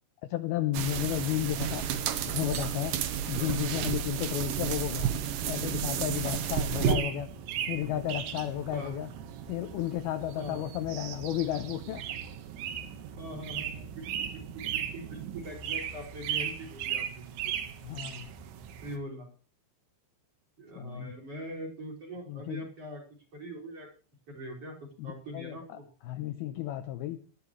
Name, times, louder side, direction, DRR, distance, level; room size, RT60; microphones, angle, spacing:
voice 1, 0.2-1.9 2.3-3.0 3.3-5.1 5.5-7.3 7.7-9.1 9.5-12.0 17.8-18.3 20.8-21.2 22.3-22.7 25.0-25.8 26.0-27.2, left 13 dB, 80° left, 9 dB, 2.3 m, -33 dB
sound 1, 0.7-7.0, right 9 dB, 70° right, 2.1 m, -31 dB
voice 2, 6.7-7.1 8.2-8.3 8.7-8.9 10.4-10.6 13.2-17.6 18.8-19.3 20.6-23.0 23.3-23.9 24.3-24.7 25.0-25.9, equal, 35° right, 2 dB, 6.2 m, -42 dB
sound 2, 6.7-19.0, right 9 dB, 90° right, 3.7 m, -37 dB
19.5 x 14.0 x 3.2 m, 0.39 s
omnidirectional pair, 5.2 m